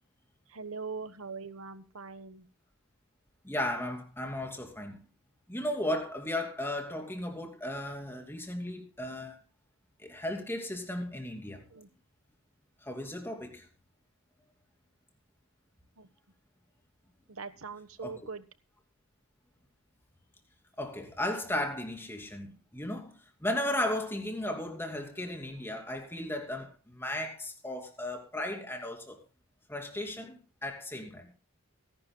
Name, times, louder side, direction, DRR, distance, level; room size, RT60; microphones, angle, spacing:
voice 1, 0.5-2.5 11.7-11.9 16.0-16.1 17.3-18.4, right 4 dB, 75° right, 1.2 m, -42 dB
voice 2, 3.4-5.0 5.5-9.4 10.0-11.6 12.8-13.7 18.0-18.3 20.8-29.2 29.7-31.3, left 1 dB, 10° left, 2.8 m, -35 dB
24.0 x 11.5 x 2.3 m
head